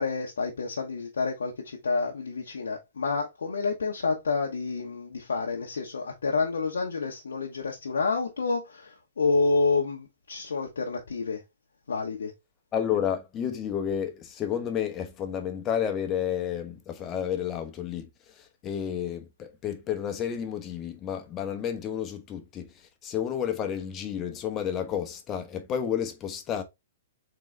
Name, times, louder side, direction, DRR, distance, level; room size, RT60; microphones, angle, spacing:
voice 1, 0.0-11.4 11.9-12.3, left 4 dB, 85° left, 0.9 m, -29 dB
voice 2, 12.7-18.1 18.4-22.7 23.0-26.6, left 9 dB, 25° left, 1.0 m, -31 dB
3.9 x 3.7 x 3.2 m
hypercardioid pair, 130°, 0 cm